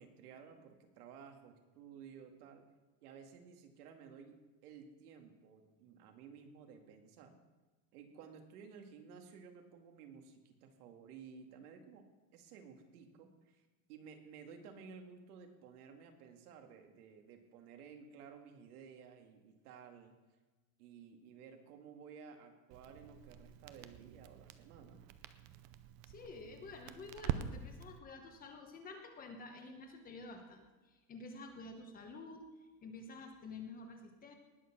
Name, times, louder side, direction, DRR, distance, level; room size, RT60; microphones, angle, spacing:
voice 1, 0.0-2.6 3.0-7.4 7.9-12.0 12.3-13.6 13.9-20.1 20.8-25.1, right 6 dB, 75° right, 4 dB, 2.3 m, -55 dB
Crackle, 22.7-28.0, right 10 dB, 35° right, 0.5 m, -45 dB
voice 2, 26.0-34.3, left 3 dB, 20° left, 5 dB, 1.1 m, -50 dB
19.0 x 6.9 x 5.9 m, 1.3 s
supercardioid pair, 170°, 46 cm